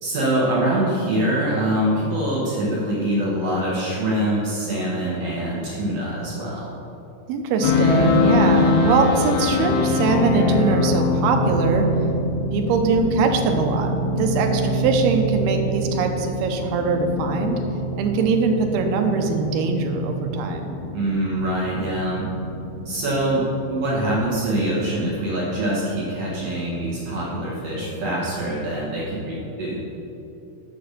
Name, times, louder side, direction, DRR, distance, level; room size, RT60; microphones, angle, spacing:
voice 1, 0.0-6.8 20.9-22.2 22.8-29.8, right 1 dB, 60° right, -6 dB, 1.7 m, -24 dB
voice 2, 7.3-11.9 12.5-17.6 18.0-20.8, right 4 dB, 75° right, 4 dB, 2.6 m, -22 dB
sound 1, 7.6-27.6, left 2 dB, 90° left, 3.0 m, -24 dB
7.7 x 6.2 x 6.7 m, 2.9 s
omnidirectional pair, 4.9 m